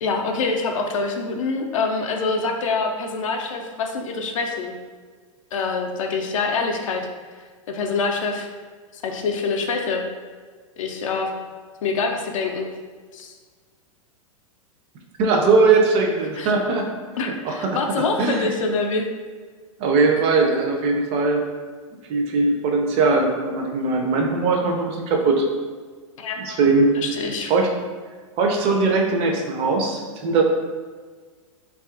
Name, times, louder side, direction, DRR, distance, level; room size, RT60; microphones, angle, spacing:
voice 1, 0.0-4.7 5.5-7.0 7.7-8.5 8.9-10.0 10.8-11.3 11.8-12.7 13.1-13.3 16.4-16.5 17.2-19.1 26.2-26.6 27.0-27.5, left 4 dB, 70° left, 3 dB, 0.4 m, -25 dB
voice 2, 15.2-16.9 17.2-18.6 19.8-21.5 22.1-25.5 26.4-26.9 27.5-27.7 28.4-30.4, right 3 dB, 35° right, 1 dB, 0.4 m, -20 dB
2.5 x 2.3 x 2.4 m, 1.5 s
hypercardioid pair, 100°, 17 cm